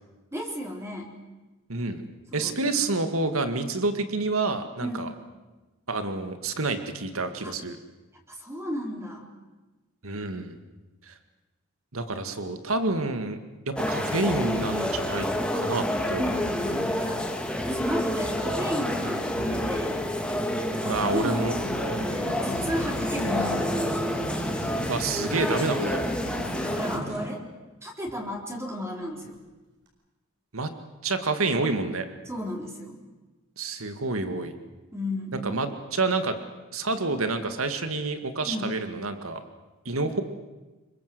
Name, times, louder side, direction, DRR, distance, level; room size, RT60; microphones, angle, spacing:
voice 1, 0.3-1.1 2.3-2.9 4.8-5.1 7.4-7.5 8.3-9.3 16.1-17.3 17.6-20.1 20.7-23.9 25.9-26.1 26.6-27.5 27.8-29.4 32.3-33.0 34.9-35.4 38.4-38.8, left 1 dB, 15° right, 0 dB, 3.9 m, -34 dB
voice 2, 1.7-2.0 2.3-5.1 5.9-7.8 10.0-10.6 11.1-11.2 11.9-13.4 13.7-16.8 20.9-21.5 24.9-26.0 30.5-30.7 31.0-32.1 33.6-34.5 35.4-36.4 36.7-39.4 39.9-40.2, right 3 dB, 80° right, 8 dB, 2.1 m, -28 dB
sound 1, 13.8-27.0, left 1 dB, 5° left, 2.1 m, -29 dB
sound 2, 18.2-25.1 29.3-29.4 29.9-30.0, right 1 dB, 60° right, 6.5 m, -43 dB
sound 3, 22.1-27.3, equal, 30° right, 3.3 m, -35 dB
26.5 x 23.5 x 7.9 m, 1.2 s
head